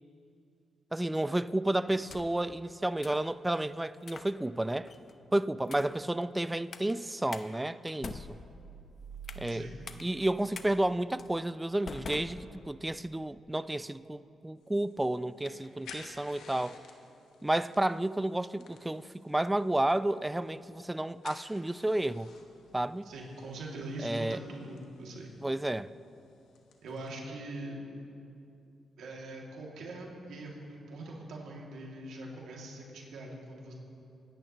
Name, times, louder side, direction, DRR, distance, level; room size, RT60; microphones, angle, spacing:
voice 1, 0.9-4.9 5.3-8.3 9.4-9.7 10.0-16.8 17.4-22.3 22.7-23.1 24.0-24.4 25.4-25.9, right 1 dB, 15° right, 0.4 m, -31 dB
sound 1, 1.9-2.5 3.0-3.3 4.0-4.3 4.9-5.2 5.6-6.0 6.7-6.9 7.3-7.5 7.9-9.5 9.9-10.0 10.5-10.7 11.2-11.3 11.9-12.9, left 4 dB, 55° left, 0.8 m, -45 dB
sound 2, 8.5-11.5, right 6 dB, 45° right, 1.2 m, -50 dB
voice 2, 9.4-9.8 23.0-25.3 26.8-27.8 29.0-33.7, right 2 dB, 80° right, 2.2 m, -42 dB
sound 3, 14.6-27.1, left 5 dB, 85° left, 1.2 m, -55 dB
24.0 x 10.5 x 3.0 m
supercardioid pair, 60°, 0 cm